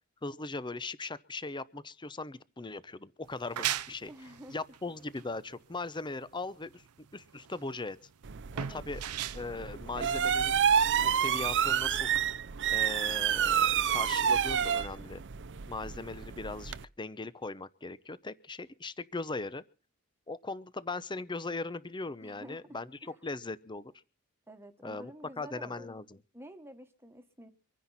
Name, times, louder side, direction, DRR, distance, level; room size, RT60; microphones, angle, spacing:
voice 1, 0.2-4.1 4.5-6.8 7.1-8.0 8.7-9.0 9.3-10.6 11.0-12.1 12.7-15.2 15.7-19.6 20.3-23.9 24.8-25.1 25.4-26.2, left 3 dB, 20° left, 16 dB, 0.7 m, -39 dB
sound 1, 3.2-10.7, right 11 dB, 90° right, 0.7 m, -39 dB
voice 2, 4.1-4.6 8.5-8.8 22.2-22.6 23.0-23.1 24.5-25.9 26.3-27.5, right 1 dB, 10° right, 7 dB, 1.5 m, -49 dB
sound 2, 8.2-16.8, right 8 dB, 55° right, 0.6 m, -29 dB
25.0 x 10.0 x 4.2 m, 0.37 s
head